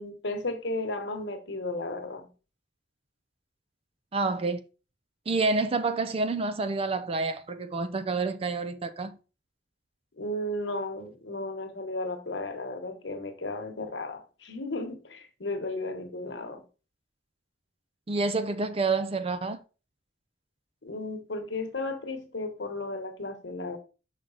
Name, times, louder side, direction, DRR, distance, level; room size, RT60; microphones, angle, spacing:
voice 1, 0.0-2.3 10.2-16.6 20.8-23.8, left 2 dB, 70° left, 1.1 m, -34 dB
voice 2, 4.1-4.7 5.3-9.2 18.1-19.6, right 3 dB, 30° right, 0.4 m, -28 dB
5.9 x 4.9 x 3.9 m
head